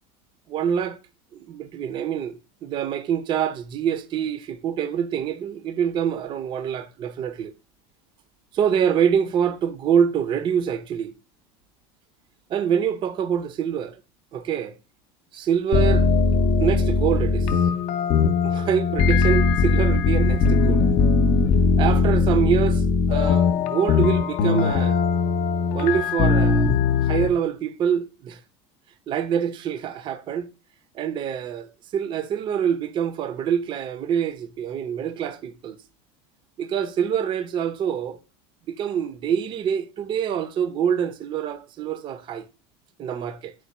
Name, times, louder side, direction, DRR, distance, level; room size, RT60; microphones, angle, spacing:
voice 1, 0.5-1.0 1.3-7.5 8.5-11.1 12.5-14.0 14.3-14.8 15.3-16.1 16.6-17.5 18.4-20.8 21.8-25.1 25.7-28.4 29.1-30.5 30.9-35.8 36.6-38.2 38.7-42.5 43.0-43.5, right 8 dB, 35° right, 0.5 m, -25 dB
sound 1, 15.7-27.3, left 4 dB, 50° left, 0.5 m, -20 dB
4.5 x 2.2 x 4.1 m
supercardioid pair, 125°, 14 cm